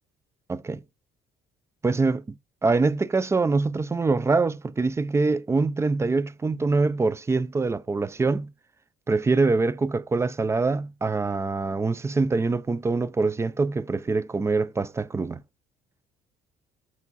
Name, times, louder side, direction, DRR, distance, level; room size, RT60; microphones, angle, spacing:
voice 1, 0.5-0.8 1.8-2.2 2.6-8.5 9.1-15.4, right 3 dB, 15° right, 0.4 m, -24 dB
6.8 x 4.7 x 4.0 m
cardioid pair, 110°, 17 cm